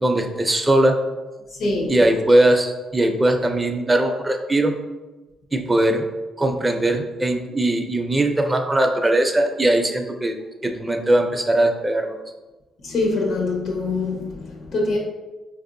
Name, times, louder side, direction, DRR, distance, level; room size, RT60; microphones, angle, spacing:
voice 1, 0.0-1.0 1.9-4.7 5.5-6.1 6.4-10.3 10.6-12.2, right 1 dB, 20° right, 4 dB, 0.4 m, -20 dB
voice 2, 1.5-2.0 12.8-15.0, left 2 dB, 75° left, -1 dB, 1.0 m, -24 dB
4.7 x 2.6 x 2.5 m, 1.2 s
cardioid pair, 85°, 0 cm